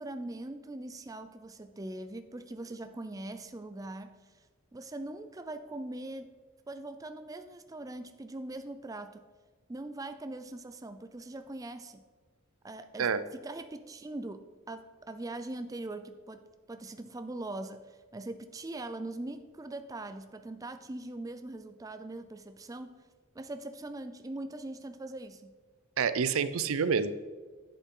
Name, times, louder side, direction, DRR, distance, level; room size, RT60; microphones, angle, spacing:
voice 1, 0.0-4.3 4.7-6.3 6.7-9.2 9.7-12.0 12.6-16.4 16.7-22.9 23.3-25.5, right 2 dB, 15° right, 9 dB, 0.4 m, -41 dB
voice 2, 26.0-27.1, right 6 dB, 85° right, 14 dB, 0.5 m, -27 dB
10.0 x 8.1 x 3.8 m, 1.4 s
head